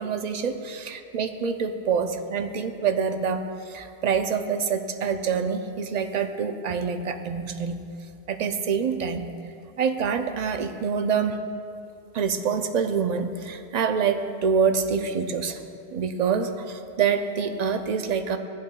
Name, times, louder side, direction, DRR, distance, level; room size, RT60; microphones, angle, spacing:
voice 1, 0.0-3.4 3.7-7.8 8.3-9.3 9.8-11.4 12.1-15.6 15.9-18.4, right 6 dB, 50° right, 7 dB, 0.6 m, -26 dB
16.5 x 8.4 x 2.3 m, 2.5 s
omnidirectional pair, 1.1 m